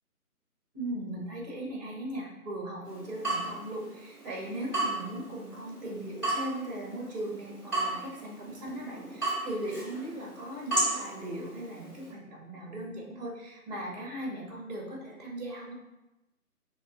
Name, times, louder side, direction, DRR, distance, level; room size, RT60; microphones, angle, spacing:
voice 1, 0.7-15.7, right 1 dB, 25° right, -2 dB, 1.1 m, -38 dB
Water tap faucet / Drip, 2.8-12.1, right 2 dB, ahead, 1.4 m, -35 dB
5.1 x 3.3 x 3.2 m, 1.0 s
figure-of-eight pair, 150°, 45 cm